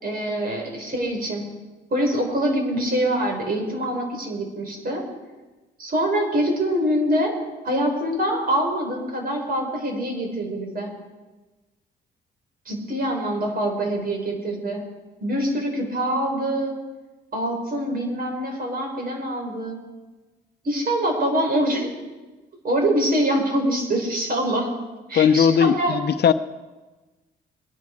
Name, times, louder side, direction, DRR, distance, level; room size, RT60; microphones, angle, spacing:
voice 1, 0.0-1.5 1.9-5.1 5.8-7.4 7.6-10.9 12.7-14.8 15.2-16.7 17.3-19.8 20.6-21.9 22.6-24.7 25.1-26.0, right 1 dB, 50° right, 1 dB, 5.4 m, -24 dB
voice 2, 25.1-26.3, left 7 dB, 55° left, 11 dB, 0.8 m, -18 dB
22.5 x 10.5 x 4.9 m, 1.2 s
cardioid pair, 90°, 20 cm